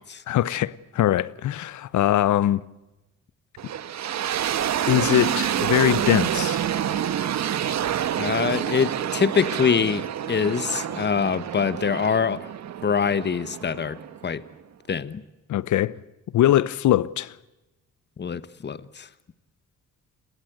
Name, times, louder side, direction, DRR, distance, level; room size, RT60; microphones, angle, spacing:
voice 1, 0.3-2.6 4.9-6.6 15.5-15.9 16.3-17.3, left 13 dB, 75° left, 1.0 m, -22 dB
sound 1, 3.6-14.5, right 10 dB, 60° right, 1.6 m, -28 dB
voice 2, 8.2-12.5 12.8-14.4 14.9-15.2 18.2-19.1, left 6 dB, 35° left, 1.4 m, -24 dB
29.0 x 21.0 x 8.0 m
cardioid pair, 90°, 30 cm